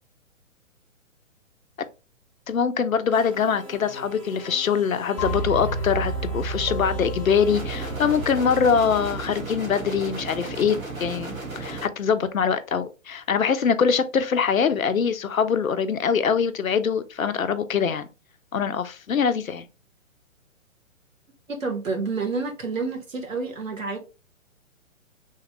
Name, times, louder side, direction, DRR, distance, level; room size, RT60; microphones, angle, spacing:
voice 1, 2.5-18.1 18.5-19.7, left 6 dB, 85° left, 0.6 m, -23 dB
sound 1, 3.1-9.1, right 1 dB, 10° right, 0.5 m, -44 dB
sound 2, 5.2-9.4, right 2 dB, 35° left, 0.7 m, -31 dB
sound 3, 7.5-11.9, right 3 dB, 90° right, 1.2 m, -34 dB
voice 2, 21.5-24.0, right 4 dB, 75° right, 1.1 m, -29 dB
3.4 x 2.2 x 3.2 m
figure-of-eight pair, 125°, 40 cm